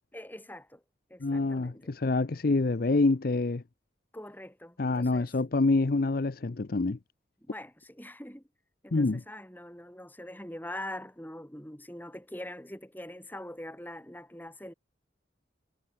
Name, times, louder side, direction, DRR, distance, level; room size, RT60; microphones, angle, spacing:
voice 1, 0.1-0.8 1.1-1.9 4.1-5.3 7.4-8.4 8.8-14.7, left 1 dB, 10° left, 3.8 m, -43 dB
voice 2, 1.2-3.6 4.8-7.0 8.9-9.2, left 3 dB, 50° left, 0.6 m, -26 dB
head